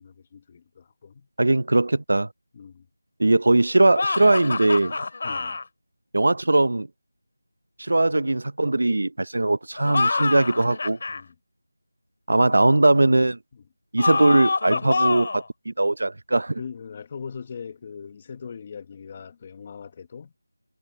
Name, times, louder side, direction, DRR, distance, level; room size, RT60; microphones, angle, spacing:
voice 1, 0.0-1.3 2.5-2.8 5.2-5.6 11.1-11.3 12.4-12.8 13.5-13.6 14.7-15.2 16.6-20.3, left 6 dB, 20° left, 1.3 m, -40 dB
voice 2, 1.4-2.3 3.2-5.0 6.1-6.9 7.8-11.0 12.3-13.4 13.9-16.6, right 2 dB, 60° right, 0.8 m, -20 dB
sound 1, 3.9-5.6 9.8-11.2 14.0-15.5, left 3 dB, 40° left, 2.3 m, -26 dB
figure-of-eight pair, 175°, 0 cm